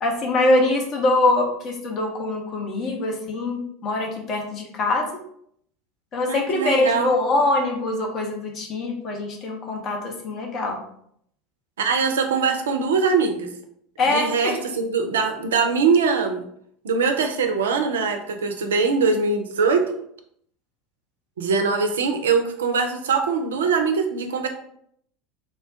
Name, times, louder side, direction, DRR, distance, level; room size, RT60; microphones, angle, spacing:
voice 1, 0.0-5.1 6.1-10.8 14.0-14.6, left 2 dB, 40° left, 1 dB, 0.7 m, -23 dB
voice 2, 6.3-7.1 11.8-13.5 14.1-16.4 16.8-19.9 21.4-24.5, right 5 dB, 70° right, 5 dB, 0.3 m, -22 dB
3.1 x 2.1 x 2.5 m, 0.68 s
figure-of-eight pair, 75°, 0 cm